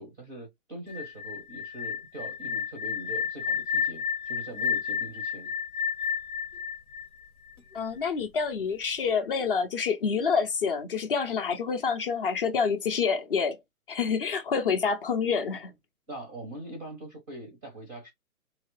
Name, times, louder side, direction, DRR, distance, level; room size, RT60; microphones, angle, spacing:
voice 1, 0.0-5.5 16.1-18.1, right 1 dB, 10° right, 0.5 m, -42 dB
sound 1, 0.9-7.8, left 7 dB, 85° left, 1.0 m, -31 dB
voice 2, 7.7-13.6 13.9-15.7, left 5 dB, 40° left, 0.6 m, -27 dB
2.8 x 2.7 x 3.1 m
figure-of-eight pair, 135°, 43 cm